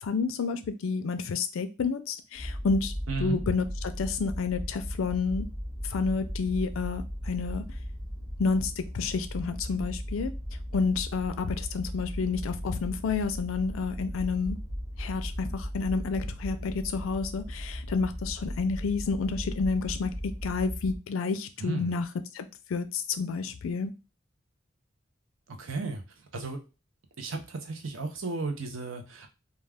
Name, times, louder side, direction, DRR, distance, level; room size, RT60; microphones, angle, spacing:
voice 1, 0.0-2.9 3.2-5.5 5.8-7.6 8.4-10.3 10.7-14.6 15.0-22.1 22.3-23.9, left 4 dB, 85° left, 9 dB, 0.4 m, -30 dB
sound 1, 2.3-21.0, equal, ahead, 0.8 m, -37 dB
voice 2, 3.1-3.4 21.6-21.9 25.6-26.0 26.3-26.6 27.2-29.3, right 3 dB, 90° right, 5 dB, 0.6 m, -34 dB
2.3 x 2.3 x 3.3 m, 0.30 s
head